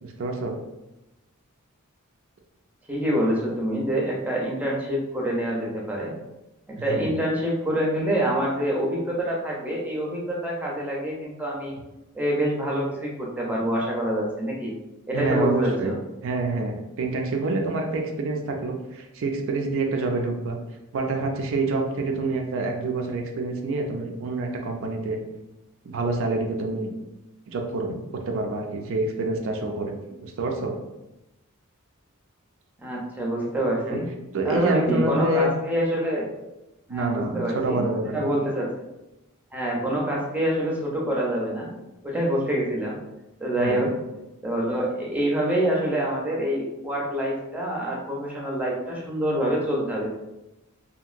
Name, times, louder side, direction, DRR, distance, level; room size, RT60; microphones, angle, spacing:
voice 1, 0.0-0.6 6.8-7.1 15.1-15.9 16.2-20.6 20.9-25.2 25.9-26.9 27.5-29.9 30.2-30.7 33.9-34.1 34.3-35.5 36.9-38.3 43.6-43.9, right 2 dB, 65° right, 2 dB, 0.4 m, -27 dB
voice 2, 2.9-6.1 6.7-11.7 12.1-14.7 15.1-15.9 32.8-34.1 34.4-36.3 36.9-37.8 38.1-38.7 39.5-41.7 42.0-43.0 43.4-43.9 44.4-50.1, right 1 dB, 5° right, -3 dB, 0.5 m, -26 dB
2.8 x 2.5 x 2.4 m, 0.96 s
head